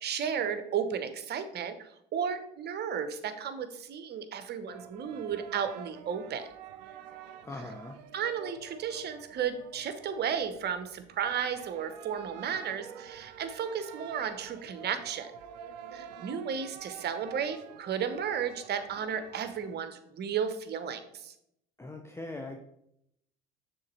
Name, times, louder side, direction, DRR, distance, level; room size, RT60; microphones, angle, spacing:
voice 1, 0.0-6.5 8.1-15.3 15.9-21.3, right 7 dB, 50° right, 10 dB, 0.9 m, -34 dB
sound 1, 4.7-19.7, right 9 dB, 85° right, 0.5 m, -48 dB
voice 2, 7.4-8.0 21.8-22.6, left 2 dB, 10° left, 3 dB, 0.7 m, -40 dB
6.3 x 3.9 x 4.4 m, 0.76 s
hypercardioid pair, 60°, 21 cm